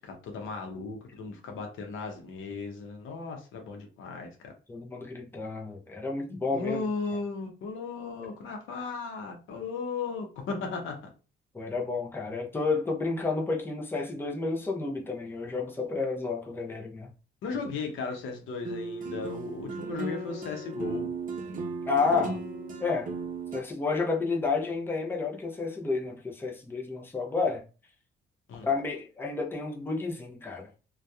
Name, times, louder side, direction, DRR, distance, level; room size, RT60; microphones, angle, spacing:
voice 1, 0.0-4.5 6.5-11.0 17.4-21.1 28.5-28.7, left 4 dB, 80° left, 0.7 m, -36 dB
voice 2, 4.7-6.8 11.5-17.1 21.9-22.4 22.8-23.1 23.5-27.6 28.6-30.7, left 4 dB, 10° left, 0.6 m, -30 dB
sound 1, 18.7-23.6, right 3 dB, 45° right, 0.5 m, -36 dB
2.6 x 2.3 x 2.3 m
cardioid pair, 90°, 20 cm